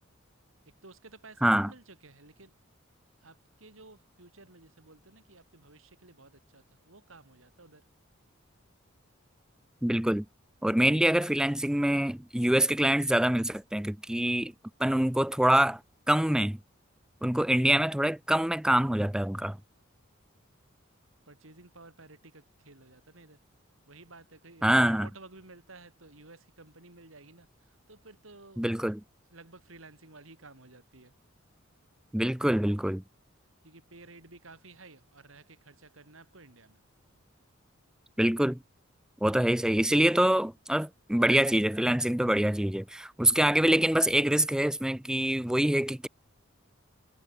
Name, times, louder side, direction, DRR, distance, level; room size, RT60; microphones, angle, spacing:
voice 1, 0.6-2.5 3.2-7.9 21.3-23.4 23.9-28.6 29.3-31.1 33.6-36.8, right 3 dB, 75° right, 4.0 m, -53 dB
voice 2, 9.8-10.3 10.6-14.5 14.8-15.8 16.1-16.6 17.2-19.6 24.6-25.1 28.6-29.0 32.1-33.0 38.2-38.6 39.2-46.1, right 1 dB, 5° right, 0.4 m, -25 dB
head